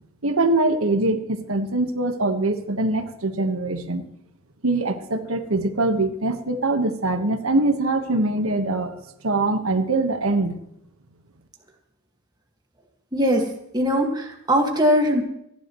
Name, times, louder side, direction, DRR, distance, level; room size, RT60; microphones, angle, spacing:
voice 1, 0.2-4.0 4.6-9.0 9.2-10.6, right 2 dB, 90° right, 7 dB, 1.4 m, -23 dB
voice 2, 13.1-13.5 13.7-15.2, equal, 20° right, 1 dB, 1.9 m, -20 dB
28.0 x 11.5 x 3.1 m, 0.77 s
head